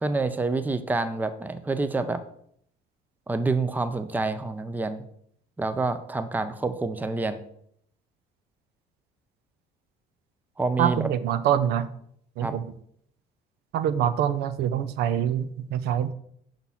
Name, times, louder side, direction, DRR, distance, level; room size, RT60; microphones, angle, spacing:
voice 1, 0.0-2.2 3.3-5.0 5.6-7.4 10.6-11.1 12.4-12.5, right 3 dB, 10° right, 10 dB, 0.5 m, -27 dB
voice 2, 10.8-11.9 12.4-12.7 13.7-16.1, right 10 dB, 75° right, 12 dB, 0.5 m, -25 dB
6.0 x 3.9 x 5.6 m, 0.68 s
cardioid pair, 110°, 17 cm